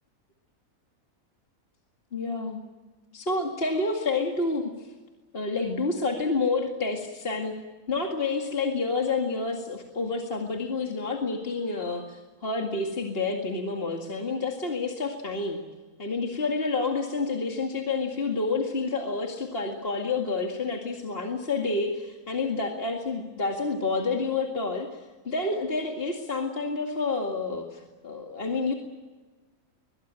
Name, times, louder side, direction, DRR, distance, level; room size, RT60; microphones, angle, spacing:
voice 1, 2.1-2.6 3.1-4.9 5.3-7.6 7.9-15.6 16.0-28.7, left 3 dB, 40° left, 1 dB, 2.3 m, -29 dB
22.5 x 22.0 x 8.9 m, 1.3 s
omnidirectional pair, 1.5 m